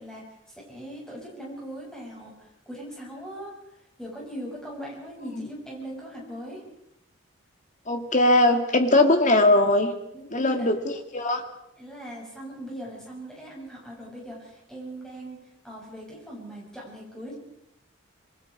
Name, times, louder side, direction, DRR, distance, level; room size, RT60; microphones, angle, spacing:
voice 1, 0.0-3.5 4.0-6.6 10.1-10.7 11.8-15.4 15.6-17.4, right 1 dB, 5° left, -4 dB, 7.1 m, -40 dB
voice 2, 7.9-9.9 10.3-11.4, left 1 dB, 35° left, 6 dB, 2.1 m, -20 dB
27.5 x 22.0 x 4.8 m, 0.81 s
head